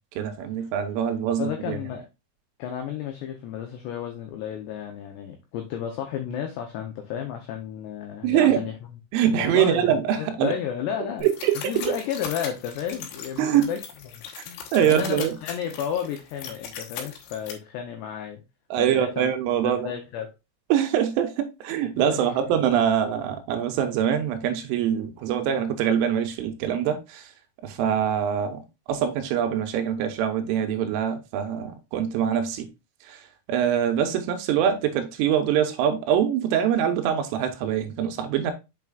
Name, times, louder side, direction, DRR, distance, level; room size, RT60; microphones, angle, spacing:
voice 1, 0.2-1.8 8.2-8.6 9.1-10.6 11.2-12.0 13.4-13.7 14.4-14.5 14.7-15.3 18.7-19.9 20.7-27.3 27.6-28.6 28.9-32.7 33.0-33.2 33.5-38.5, right 9 dB, 80° right, 3.1 m, -24 dB
voice 2, 1.4-2.1 2.6-8.7 9.3-11.3 11.6-13.8 14.1-18.4 18.8-19.3 19.6-20.3 22.0-22.3 27.8-28.0, left 9 dB, 90° left, 2.4 m, -32 dB
sound 1, 11.2-17.5, left 8 dB, 75° left, 2.9 m, -39 dB
7.1 x 5.9 x 2.3 m
omnidirectional pair, 6.0 m